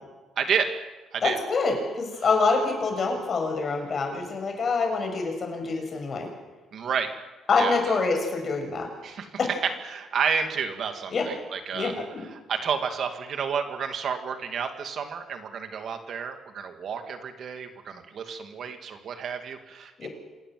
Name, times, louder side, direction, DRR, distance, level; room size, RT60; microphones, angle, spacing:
voice 1, 0.4-0.7 1.1-1.4 6.7-7.1 7.6-8.0 9.0-9.3 9.6-11.9 12.3-20.1, right 6 dB, 55° right, 6 dB, 2.4 m, -30 dB
voice 2, 1.2-6.3 7.5-8.9 9.4-9.5 11.1-11.2 11.7-12.3 20.0-20.1, left 4 dB, 40° left, 3 dB, 6.9 m, -26 dB
26.5 x 20.0 x 7.8 m, 1.2 s
cardioid pair, 130°, 0 cm